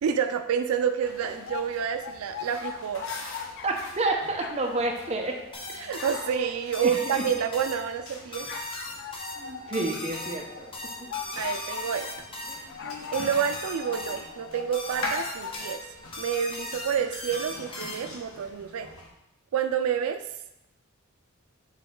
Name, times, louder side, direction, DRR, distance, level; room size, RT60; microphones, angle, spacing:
voice 1, 0.0-3.0 5.8-8.5 11.4-12.1 13.1-15.8 16.2-18.9 19.5-20.2, right 8 dB, 90° right, 8 dB, 0.4 m, -28 dB
sound 1, 1.0-19.1, left 2 dB, 75° left, 1.1 m, -43 dB
sound 2, 1.3-4.0 4.4-8.0 8.5-12.2 12.7-15.6, left 7 dB, 55° left, 0.4 m, -41 dB
voice 2, 3.6-5.4 5.7-5.9 6.8-7.2 9.4-10.7, right 2 dB, 30° right, 1 dB, 0.8 m, -29 dB
sound 3, 5.5-18.3, left 1 dB, 25° left, 0.9 m, -39 dB
7.2 x 3.7 x 3.8 m, 0.87 s
head